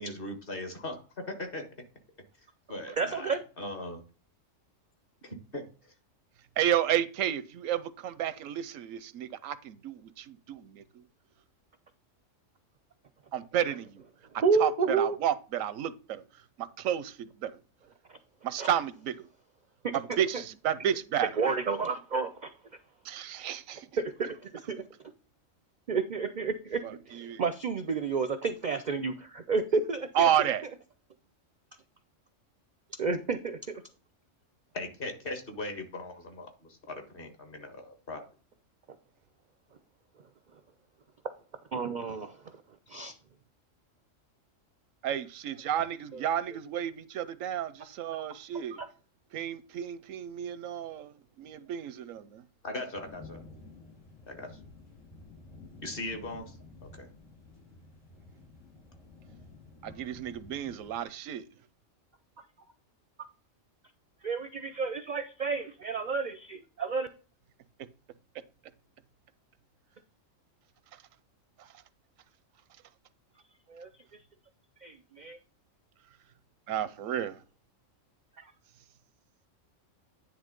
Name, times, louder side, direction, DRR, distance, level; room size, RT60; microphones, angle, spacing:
voice 1, 0.0-1.6 2.7-4.0 5.2-5.9 34.7-38.3 52.6-53.4 54.3-54.6 55.8-56.6 56.8-57.1, left 2 dB, 45° left, 1.7 m, -39 dB
voice 2, 3.0-3.4 14.4-15.2 18.6-18.7 19.8-19.9 21.4-22.5 24.0-24.8 25.9-26.8 27.1-30.3 33.0-33.8 41.7-42.3 42.9-43.1 64.2-67.1 73.7-73.9 74.8-75.4 78.4-78.5, right 4 dB, 50° right, 0.5 m, -30 dB
voice 3, 6.6-11.1 13.3-14.0 14.3-17.6 18.4-19.3 19.9-21.3 23.0-23.9 26.8-27.4 30.1-30.6 45.0-48.8 49.3-52.4 59.8-61.5 70.9-71.0 71.6-71.7 76.7-77.4, right 10 dB, 90° right, 1.0 m, -32 dB
sound 1, 52.9-61.1, left 3 dB, 75° left, 3.5 m, -51 dB
9.9 x 3.4 x 5.1 m
omnidirectional pair, 1.3 m